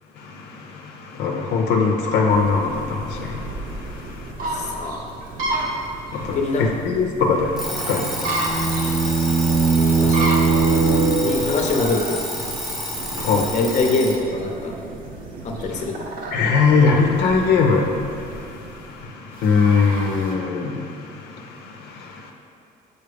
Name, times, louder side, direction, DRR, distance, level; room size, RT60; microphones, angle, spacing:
voice 1, 0.2-4.3 6.1-10.4 13.1-13.6 15.7-15.8 16.3-22.3, left 4 dB, 80° left, 1 dB, 0.6 m, -22 dB
sound 1, 2.3-20.3, right 2 dB, 55° right, 0.9 m, -32 dB
voice 2, 4.5-5.0 6.3-6.7 10.0-10.4 11.2-12.2 13.5-14.7 15.4-16.0, left 3 dB, 45° left, 2 dB, 0.7 m, -24 dB
Alarm, 7.6-14.3, left 1 dB, ahead, 0.8 m, -30 dB
sound 2, 7.9-11.8, right 4 dB, 30° right, 0.6 m, -20 dB
6.7 x 4.2 x 3.4 m, 2.5 s
cardioid pair, 110°, 17 cm